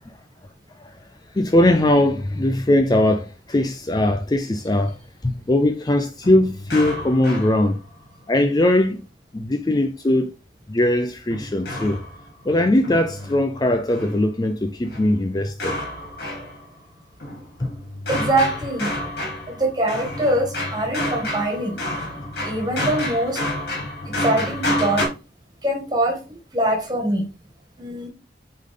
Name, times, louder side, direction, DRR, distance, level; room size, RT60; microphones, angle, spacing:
voice 1, 1.3-5.0 5.2-7.8 8.3-9.0 9.3-10.3 10.7-12.0 12.4-15.8 17.6-17.7, left 1 dB, 20° left, 0.4 m, -20 dB
sound 1, 6.2-8.1 11.3-14.3 14.8-16.8 17.2-25.1, left 1 dB, 60° left, 3.5 m, -30 dB
voice 2, 18.1-19.0 19.5-21.8 22.4-23.4 24.1-25.0 25.6-27.3 27.8-28.1, right 1 dB, 20° right, 1.8 m, -23 dB
8.6 x 3.8 x 3.7 m
head